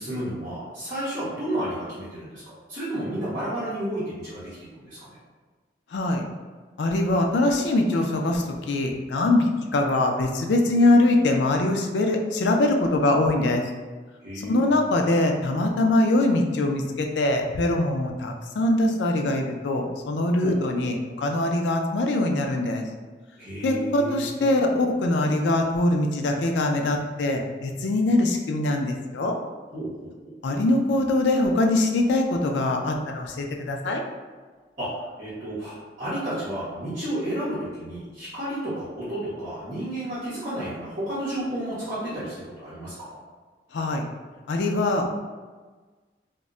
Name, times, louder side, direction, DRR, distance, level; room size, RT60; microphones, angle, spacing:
voice 1, 0.0-5.2 14.2-15.0 20.4-20.6 23.4-24.5 29.7-30.3 34.8-43.2, right 1 dB, 50° right, -12 dB, 0.8 m, -32 dB
voice 2, 5.9-6.2 6.8-13.6 14.4-22.8 23.6-29.3 30.4-34.0 43.7-44.0 44.5-45.1, left 2 dB, 85° left, 2 dB, 0.4 m, -23 dB
2.2 x 2.1 x 3.6 m, 1.4 s
head